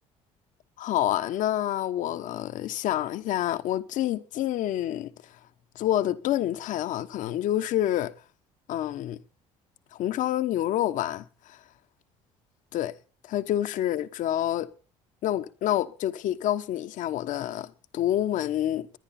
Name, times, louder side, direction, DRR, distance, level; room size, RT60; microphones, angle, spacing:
voice 1, 0.8-5.1 5.7-8.1 8.7-9.2 10.0-11.6 12.7-12.9 13.2-14.7 15.2-19.0, left 12 dB, 65° left, 1.1 m, -28 dB
19.5 x 10.5 x 4.3 m
supercardioid pair, 85°, 14 cm